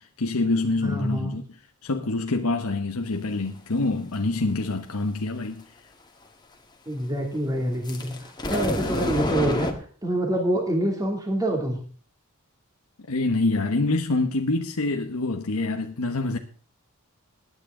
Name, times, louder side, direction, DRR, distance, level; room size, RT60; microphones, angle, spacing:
voice 1, 0.0-1.4 1.8-5.8 13.1-16.4, left 2 dB, 90° left, 1.2 m, -26 dB
voice 2, 0.8-1.3 6.9-9.7 10.0-11.8, right 1 dB, 15° right, 2.7 m, -26 dB
sound 1, 7.8-9.7, left 1 dB, 20° left, 1.9 m, -27 dB
20.0 x 9.5 x 3.8 m
head